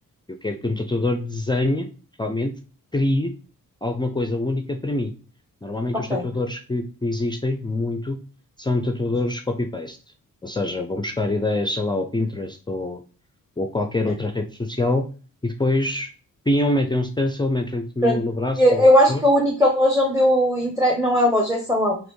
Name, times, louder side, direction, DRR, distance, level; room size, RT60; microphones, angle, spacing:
voice 1, 0.4-1.9 2.2-2.5 2.9-3.3 3.8-5.1 5.6-8.2 8.6-10.0 10.4-13.0 13.6-15.0 15.4-16.1 16.5-19.2, left 2 dB, 15° left, 6 dB, 0.4 m, -25 dB
voice 2, 18.6-22.0, equal, 10° right, -1 dB, 0.9 m, -18 dB
4.1 x 3.1 x 3.1 m, 0.37 s
cardioid pair, 95°, 33 cm